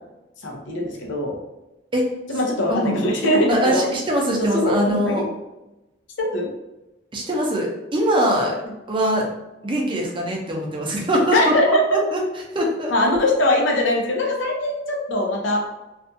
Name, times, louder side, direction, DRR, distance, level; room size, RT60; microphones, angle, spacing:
voice 1, 0.4-1.4 2.3-3.8 4.4-5.1 6.2-6.5 11.3-11.8 12.9-15.6, left 1 dB, 85° left, 0 dB, 0.6 m, -21 dB
voice 2, 2.7-3.0 3.5-5.2 7.1-8.5 8.9-9.3 9.6-12.2 12.5-12.9, equal, 25° right, -1 dB, 0.5 m, -22 dB
2.5 x 2.3 x 2.6 m, 1.0 s
head